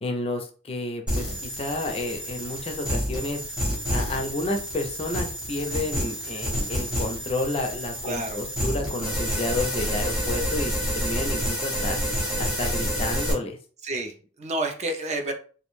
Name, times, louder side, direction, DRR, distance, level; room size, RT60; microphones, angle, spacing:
voice 1, 0.0-3.4 3.9-12.0 12.4-13.6, left 2 dB, 30° left, 5 dB, 0.4 m, -30 dB
sound 1, 1.1-13.3, equal, 5° right, 0.8 m, -29 dB
voice 2, 8.0-8.4 13.8-15.3, right 2 dB, 35° right, 5 dB, 0.4 m, -30 dB
2.4 x 2.1 x 3.0 m, 0.40 s
head